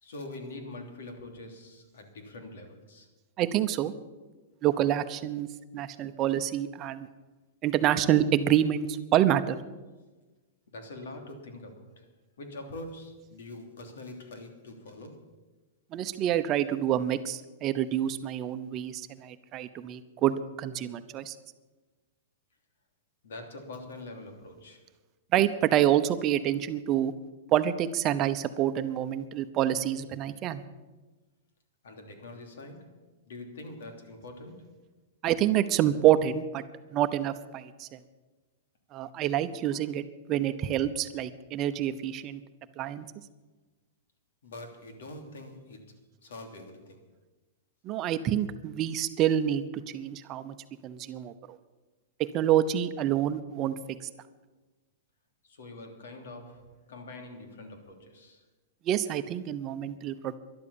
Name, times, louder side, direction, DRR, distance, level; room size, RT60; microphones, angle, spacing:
voice 1, 0.0-3.1 4.2-4.5 10.7-12.1 12.4-15.3 23.2-24.9 31.8-34.9 44.4-47.1 55.4-58.4, left 2 dB, 80° left, 5 dB, 3.0 m, -44 dB
voice 2, 3.4-3.9 4.6-5.5 5.7-7.1 7.6-9.6 15.9-21.3 25.3-27.1 27.5-30.6 35.2-36.6 36.9-38.0 38.9-40.0 40.3-42.4 42.8-43.0 47.8-50.5 50.8-51.6 52.2-53.7 58.8-60.4, right 11 dB, 35° right, 10 dB, 0.8 m, -27 dB
12.5 x 12.0 x 7.1 m, 1.2 s
hypercardioid pair, 140°, 0 cm